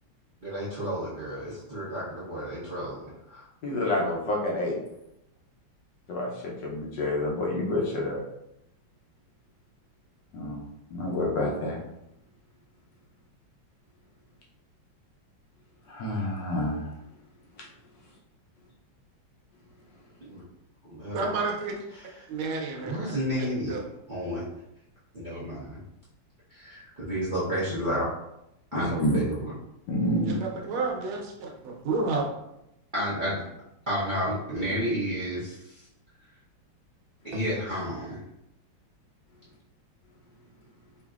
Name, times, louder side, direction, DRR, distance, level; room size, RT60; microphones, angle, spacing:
voice 1, 0.4-3.0 3.3-3.5 20.3-20.4 20.9-21.2 21.9-22.3 22.8-23.8 24.1-24.5 25.1-25.8 26.5-28.1 28.7-29.5 32.9-33.4 33.9-35.8 37.2-38.2, equal, 50° right, -10 dB, 0.6 m, -31 dB
voice 2, 3.6-4.7 6.1-8.2 10.3-10.6 11.0-11.8 15.9-16.8 28.7-29.2 29.9-30.4, left 1 dB, 70° left, -1 dB, 1.3 m, -28 dB
voice 3, 21.1-21.7 22.3-22.9 23.7-23.8 30.2-32.2, right 3 dB, 85° right, 0 dB, 1.6 m, -30 dB
5.0 x 2.5 x 2.3 m, 0.85 s
omnidirectional pair, 2.2 m